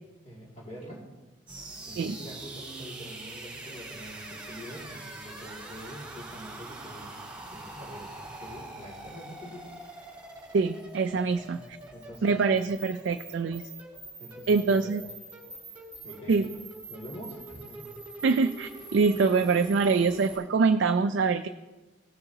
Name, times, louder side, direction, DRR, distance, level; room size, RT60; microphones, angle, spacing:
voice 1, 0.2-1.0 1.9-7.2 7.5-9.7 11.3-12.4 14.2-14.9 16.0-16.4 16.9-17.8, equal, 35° left, -4 dB, 2.3 m, -45 dB
sound 1, 1.5-20.4, right 2 dB, 10° right, 3.5 m, -44 dB
voice 2, 10.5-11.6 12.2-13.7 14.5-15.0 16.3-16.5 18.2-21.5, right 4 dB, 60° right, 6 dB, 0.3 m, -24 dB
16.5 x 6.7 x 2.8 m, 1.2 s
head